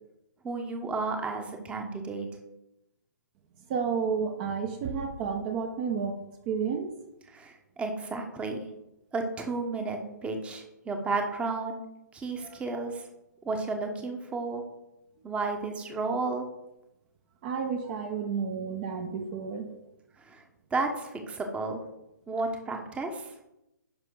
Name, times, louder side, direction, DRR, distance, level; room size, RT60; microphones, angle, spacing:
voice 1, 0.4-2.3 7.3-8.6 9.1-11.8 12.1-13.0 13.4-14.6 15.2-16.5 20.3-20.4 20.7-21.8 22.3-23.3, right 3 dB, 10° right, 4 dB, 1.1 m, -32 dB
voice 2, 3.7-6.2 6.5-6.9 12.4-12.6 17.4-19.8, right 6 dB, 35° right, 5 dB, 0.9 m, -31 dB
sound 1, 4.8-6.2, right 3 dB, 55° right, 3.3 m, -43 dB
10.5 x 5.6 x 3.8 m, 0.89 s
figure-of-eight pair, 130°, 10 cm